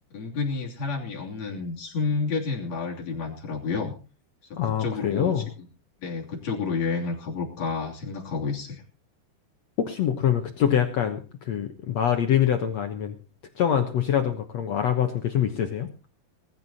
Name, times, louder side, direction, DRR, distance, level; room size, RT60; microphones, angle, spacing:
voice 1, 0.1-3.9 4.5-5.4 6.0-8.8, left 4 dB, 40° left, 0 dB, 3.8 m, -30 dB
voice 2, 4.6-5.5 9.8-13.1 13.6-15.9, left 9 dB, 80° left, 6 dB, 1.5 m, -24 dB
20.0 x 12.0 x 4.2 m, 0.35 s
omnidirectional pair, 4.9 m